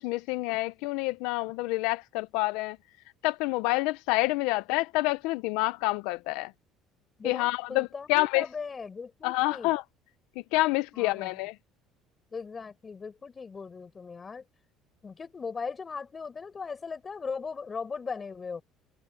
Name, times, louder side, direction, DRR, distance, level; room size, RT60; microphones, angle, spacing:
voice 1, 0.0-2.8 3.2-6.5 7.2-8.5 9.2-9.8 10.5-11.5, left 21 dB, 85° left, 0.5 m, -28 dB
voice 2, 7.2-9.7 10.9-11.4 12.3-14.5 15.0-18.6, left 5 dB, 25° left, 4.5 m, -38 dB
cardioid pair, 110°, 0 cm